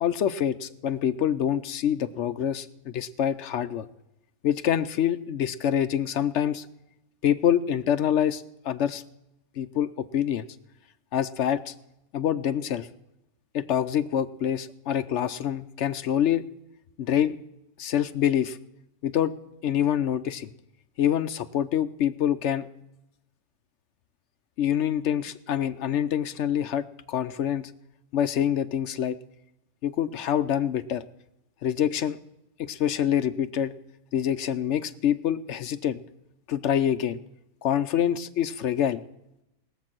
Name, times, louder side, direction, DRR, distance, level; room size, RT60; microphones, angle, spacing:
voice 1, 0.0-3.9 4.4-6.6 7.2-9.0 9.6-10.5 11.1-11.7 12.1-12.9 13.5-16.4 17.0-17.4 17.8-18.6 19.0-19.3 19.6-20.5 21.0-22.7 24.6-27.7 28.1-29.2 29.8-31.0 31.6-32.2 32.6-33.7 34.1-36.0 36.5-37.2 37.6-39.0, left 9 dB, 60° left, 11 dB, 0.9 m, -26 dB
20.0 x 7.5 x 6.0 m, 0.87 s
omnidirectional pair, 1.5 m